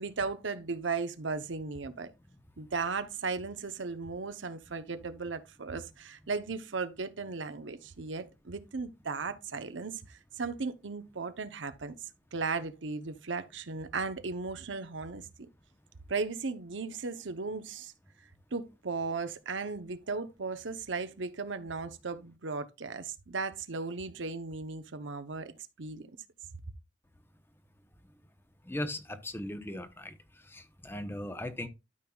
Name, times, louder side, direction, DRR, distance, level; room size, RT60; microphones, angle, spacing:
voice 1, 0.0-2.1 2.6-11.9 12.3-15.2 16.1-17.9 18.5-25.5 25.8-26.1, right 4 dB, 80° right, 0.9 m, -36 dB
voice 2, 28.6-30.1 30.4-31.7, left 1 dB, 10° left, 0.8 m, -38 dB
12.5 x 5.4 x 2.3 m
head